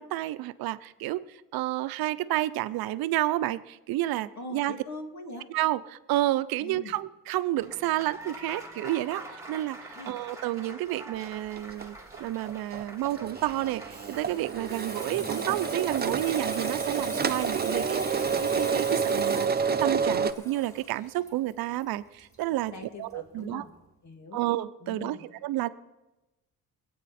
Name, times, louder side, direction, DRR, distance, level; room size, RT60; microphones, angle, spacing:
voice 1, 0.0-4.7 5.5-22.7 23.0-23.6 24.3-25.7, right 15 dB, 85° right, 14 dB, 0.7 m, -30 dB
voice 2, 4.4-5.5 6.6-6.9 9.9-10.1 22.7-23.7 24.0-24.4 24.8-25.3, left 2 dB, 50° left, 4 dB, 2.7 m, -42 dB
Applause, 7.6-18.0, right 1 dB, 10° right, 3.1 m, -47 dB
sound 1, 11.6-11.8 12.1-12.2 12.4-20.3, right 5 dB, 25° right, 0.7 m, -29 dB
Water tap faucet / Sink (filling or washing), 13.5-22.8 23.1-23.4, equal, 10° left, 4.1 m, -42 dB
25.0 x 8.7 x 4.3 m, 1.0 s
cardioid pair, 80°, 35 cm